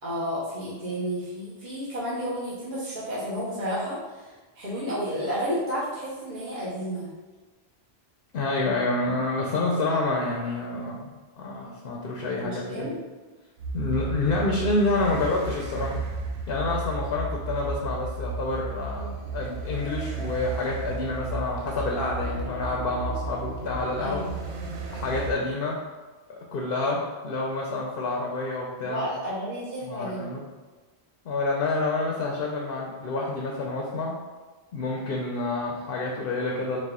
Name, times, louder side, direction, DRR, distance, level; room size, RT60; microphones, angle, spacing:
voice 1, 0.0-7.1 12.4-13.0 18.9-19.1 24.0-24.3 28.8-30.3, equal, 55° right, -8 dB, 1.0 m, -32 dB
voice 2, 8.3-12.9 13.7-16.1 16.5-19.1 19.3-24.2 24.9-25.8 26.3-29.1 29.9-30.4 31.2-34.2 34.7-36.8, left 2 dB, 65° left, -1 dB, 0.7 m, -28 dB
sound 1, 13.6-25.3, right 3 dB, 80° right, 0.8 m, -33 dB
4.1 x 2.3 x 3.6 m, 1.3 s
omnidirectional pair, 1.1 m